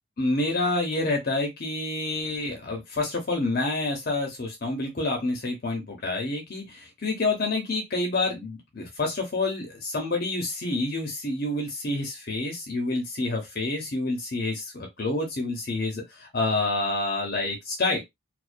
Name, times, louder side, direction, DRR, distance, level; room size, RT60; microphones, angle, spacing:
voice 1, 0.2-18.0, left 2 dB, 50° left, 1 dB, 0.7 m, -28 dB
2.3 x 2.2 x 2.4 m, 0.19 s
head